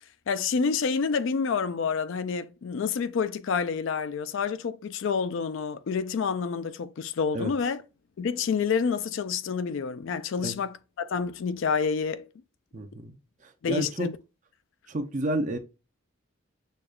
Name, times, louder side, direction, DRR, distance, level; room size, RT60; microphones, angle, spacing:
voice 1, 0.3-7.8 8.2-12.3 13.6-14.2, left 5 dB, 60° left, 0.3 m, -28 dB
voice 2, 12.7-13.2 13.7-14.1 14.9-15.6, right 1 dB, 35° right, 0.5 m, -30 dB
6.4 x 2.3 x 2.3 m
head